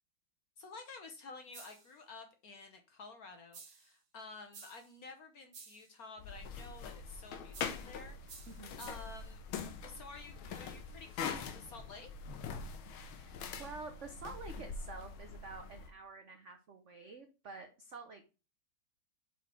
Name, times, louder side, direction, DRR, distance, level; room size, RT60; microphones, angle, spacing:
voice 1, 0.6-8.5 8.8-9.4 9.8-12.1, left 4 dB, 60° left, 5 dB, 1.1 m, -51 dB
sound 1, 1.5-2.0 3.5-4.0 4.5-5.0 5.5-5.9 7.5-7.9 8.3-9.2, right 5 dB, 45° right, 1.2 m, -54 dB
sound 2, 6.2-15.9, left 6 dB, 75° left, 1.6 m, -44 dB
voice 2, 8.5-8.9 13.1-18.2, right 4 dB, 75° right, 6 dB, 0.6 m, -49 dB
5.8 x 4.3 x 4.3 m, 0.31 s
omnidirectional pair, 2.3 m